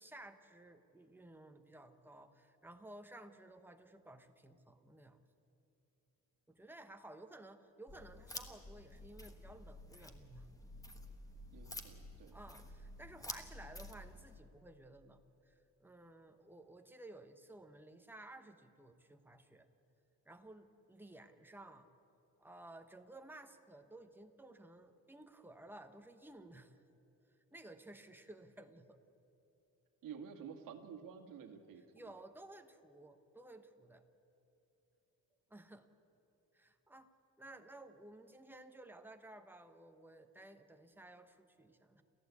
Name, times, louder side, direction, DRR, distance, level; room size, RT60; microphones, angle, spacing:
voice 1, 0.0-5.2 6.5-10.5 12.3-19.7 20.3-21.9 22.4-26.8 27.5-29.0 31.9-34.0 35.5-35.9 36.5-37.1 37.4-42.0, right 1 dB, 5° right, 6 dB, 1.0 m, -55 dB
sound 1, 7.9-14.4, left 1 dB, 10° left, 1.3 m, -50 dB
voice 2, 11.5-12.4 30.0-31.8, right 7 dB, 65° right, 5 dB, 2.0 m, -50 dB
29.0 x 14.5 x 8.4 m, 2.8 s
cardioid pair, 165°, 35 cm